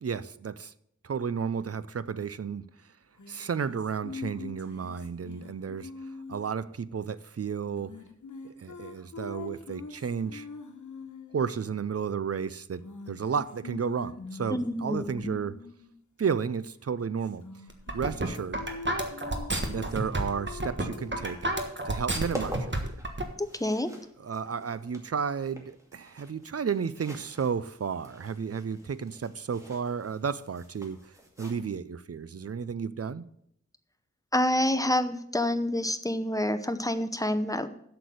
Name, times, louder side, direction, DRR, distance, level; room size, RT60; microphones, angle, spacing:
voice 1, 0.0-0.7 1.0-2.6 3.3-5.9 6.3-8.0 8.4-10.5 11.3-15.6 16.2-17.4 17.9-18.6 19.7-21.5 21.9-22.9 24.2-31.0 31.4-33.3, right 6 dB, 55° right, 0.5 m, -32 dB
sound 1, 3.2-6.5 7.7-11.4 12.8-15.9 17.2-18.2 18.5-21.5, left 4 dB, 85° left, 1.2 m, -44 dB
voice 2, 14.5-15.3 23.4-23.9 34.3-37.7, left 1 dB, 10° left, 0.8 m, -28 dB
sound 2, 17.7-23.2, right 1 dB, 40° right, 1.5 m, -30 dB
sound 3, 21.0-31.8, right 1 dB, 10° right, 2.3 m, -46 dB
8.0 x 6.8 x 7.7 m
wide cardioid pair, 70°, 29 cm